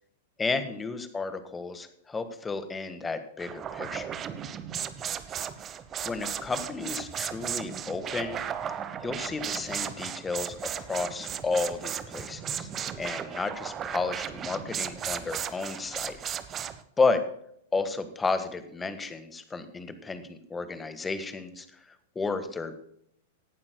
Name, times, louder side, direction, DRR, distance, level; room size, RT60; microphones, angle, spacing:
voice 1, 0.4-4.2 6.0-8.4 9.0-12.7 13.0-16.2 17.0-17.2 17.7-22.8, left 4 dB, 15° left, 10 dB, 1.5 m, -32 dB
sound 1, 3.4-16.8, right 8 dB, 25° right, 0.9 m, -35 dB
17.5 x 12.0 x 2.2 m, 0.70 s
figure-of-eight pair, 100°, 0 cm